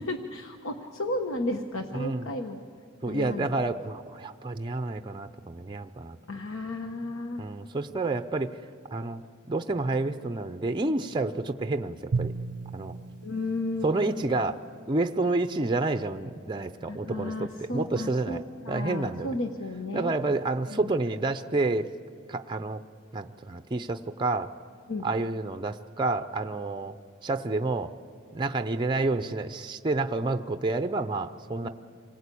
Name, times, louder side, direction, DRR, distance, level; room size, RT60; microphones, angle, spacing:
voice 1, 0.0-2.6 3.1-3.5 6.3-7.5 13.2-13.9 16.9-20.1 20.7-20.9 24.9-25.1 31.6-31.7, left 2 dB, 65° left, 5 dB, 1.1 m, -33 dB
voice 2, 1.9-2.3 3.0-6.2 7.4-8.6 8.9-9.2 9.5-12.3 12.7-12.9 13.8-14.6 14.9-18.4 18.7-19.4 19.9-21.9 22.3-22.8 23.1-24.5 25.0-26.9 27.2-27.9 28.3-31.7, right 2 dB, 20° right, 8 dB, 0.6 m, -29 dB
Drum, 12.1-14.5, right 4 dB, 85° right, 0.6 m, -35 dB
27.0 x 19.0 x 8.4 m, 2.2 s
head